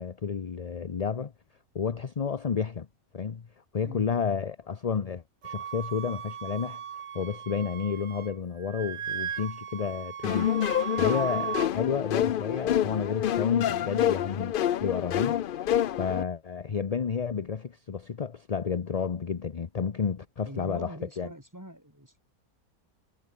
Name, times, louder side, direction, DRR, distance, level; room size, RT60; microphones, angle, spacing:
voice 1, 0.0-1.3 1.7-2.9 3.1-3.5 3.7-6.8 7.1-10.5 11.0-15.4 15.9-21.3, left 6 dB, 35° left, 0.6 m, -31 dB
Wind instrument woodwind instrument, 5.4-8.3 8.6-11.7, right 8 dB, 55° right, 1.1 m, -37 dB
sound 1, 10.2-16.2, left 11 dB, 75° left, 0.4 m, -27 dB
voice 2, 20.4-22.2, equal, 10° right, 6.1 m, -43 dB
omnidirectional pair, 1.5 m